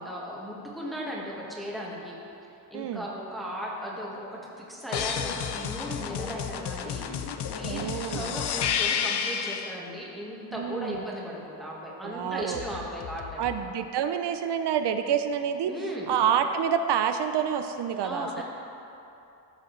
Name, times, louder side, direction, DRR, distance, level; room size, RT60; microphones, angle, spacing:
voice 1, 0.0-2.2 2.7-7.3 7.5-13.5 15.7-16.1 18.0-18.4, equal, ahead, -5 dB, 1.4 m, -36 dB
sound 1, 4.9-9.8 12.5-13.6, left 8 dB, 75° left, 0.6 m, -31 dB
voice 2, 7.6-8.3 10.5-11.0 12.0-12.6 13.4-15.7 16.1-18.4, right 8 dB, 80° right, 8 dB, 0.5 m, -28 dB
13.0 x 7.2 x 3.1 m, 2.9 s
wide cardioid pair, 160°, 40 cm